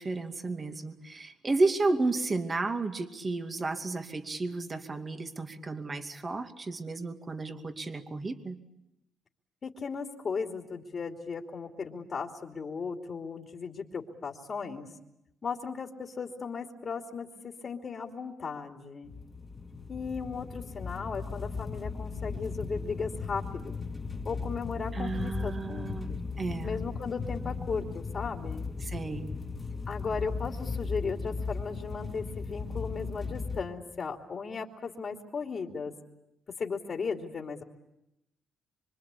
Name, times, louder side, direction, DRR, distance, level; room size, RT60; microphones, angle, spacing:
voice 1, 0.0-8.6 24.9-26.1 26.4-26.8 28.8-29.3, right 3 dB, 30° right, 6 dB, 2.5 m, -32 dB
voice 2, 9.6-14.9 15.4-19.1 19.9-23.8 24.2-26.2 26.6-28.7 29.9-35.9 36.6-37.6, left 5 dB, 45° left, 2 dB, 2.9 m, -36 dB
sound 1, 19.0-33.6, left 4 dB, 20° left, 2.3 m, -37 dB
25.5 x 25.5 x 8.4 m, 0.87 s
cardioid pair, 90°, 0 cm